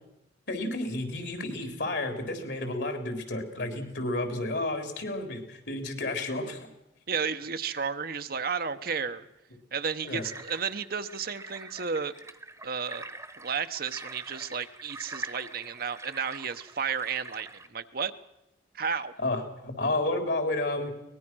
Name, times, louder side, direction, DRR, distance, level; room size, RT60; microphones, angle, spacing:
voice 1, 0.5-6.6 10.0-10.2 19.2-20.9, left 2 dB, 70° left, 6 dB, 4.0 m, -31 dB
voice 2, 7.1-9.3 9.7-12.1 12.6-13.1 13.4-18.1 18.7-19.1, right 6 dB, 55° right, 10 dB, 1.0 m, -32 dB
sound 1, 10.1-17.7, right 2 dB, 15° right, 1.1 m, -44 dB
23.0 x 20.0 x 6.2 m, 0.89 s
head